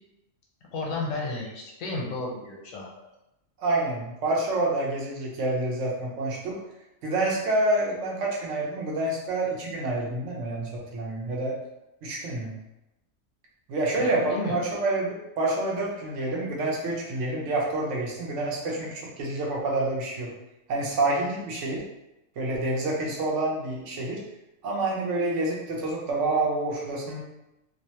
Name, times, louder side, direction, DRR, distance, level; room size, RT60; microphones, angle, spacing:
voice 1, 0.7-2.9 14.0-14.6, left 2 dB, 80° left, -3 dB, 1.1 m, -32 dB
voice 2, 3.6-6.6 7.0-11.5 12.0-12.5 13.7-20.3 20.7-21.8 22.4-24.2 24.6-27.2, right 2 dB, 70° right, -3 dB, 0.9 m, -28 dB
2.6 x 2.0 x 2.8 m, 0.92 s
omnidirectional pair, 1.4 m